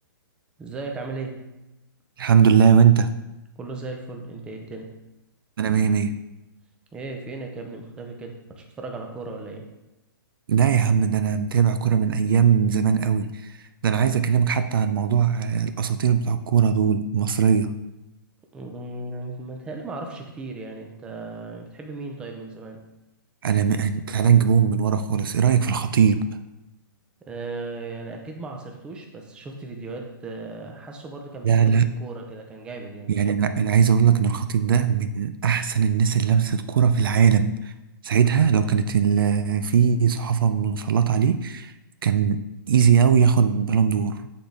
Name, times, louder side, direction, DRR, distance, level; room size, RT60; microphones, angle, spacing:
voice 1, 0.6-1.4 3.6-4.9 6.9-9.7 18.5-22.8 27.2-33.1, right 3 dB, 10° right, 2 dB, 0.5 m, -36 dB
voice 2, 2.2-3.1 5.6-6.1 10.5-17.8 23.4-26.4 31.4-31.9 33.1-37.7 38.0-41.7 42.0-44.3, right 7 dB, 75° right, 10 dB, 0.4 m, -20 dB
8.2 x 3.9 x 3.4 m, 0.96 s
hypercardioid pair, 165°, 12 cm